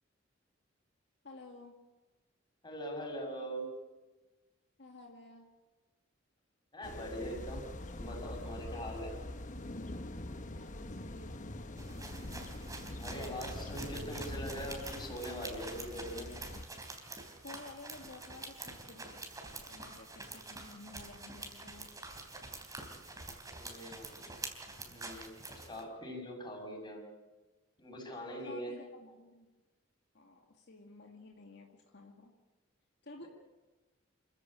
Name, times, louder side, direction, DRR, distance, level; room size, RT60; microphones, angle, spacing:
voice 1, 1.2-1.8 4.8-5.5 10.4-11.6 17.4-22.0 28.4-29.5 30.1-32.3 33.0-33.2, left 2 dB, 60° left, 1 dB, 2.1 m, -53 dB
voice 2, 2.6-3.7 6.7-7.6 7.9-9.1 12.9-16.3 23.5-24.3 24.7-27.0 27.8-28.7, equal, 25° left, 1 dB, 6.5 m, -42 dB
sound 1, 6.8-16.6, left 1 dB, 40° left, 1.2 m, -44 dB
sound 2, 11.8-25.8, right 2 dB, 20° right, 3.4 m, -47 dB
27.5 x 15.0 x 8.7 m, 1.2 s
head